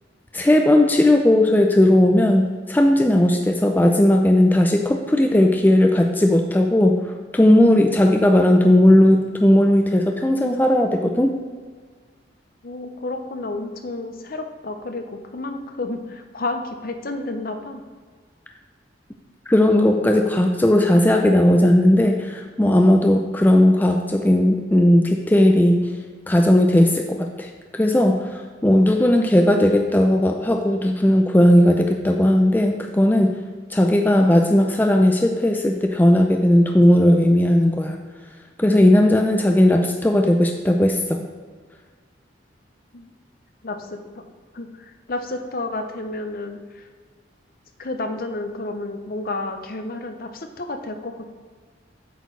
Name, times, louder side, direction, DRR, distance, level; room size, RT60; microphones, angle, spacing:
voice 1, 0.3-7.0 7.3-11.3 19.5-25.8 26.3-33.4 33.7-38.0 38.6-41.2, left 1 dB, 10° left, 3 dB, 0.4 m, -16 dB
voice 2, 12.6-17.8 42.9-43.1 43.6-44.2 44.5-46.9 47.8-51.3, left 2 dB, 50° left, 6 dB, 0.7 m, -31 dB
8.3 x 4.4 x 4.5 m, 1.5 s
head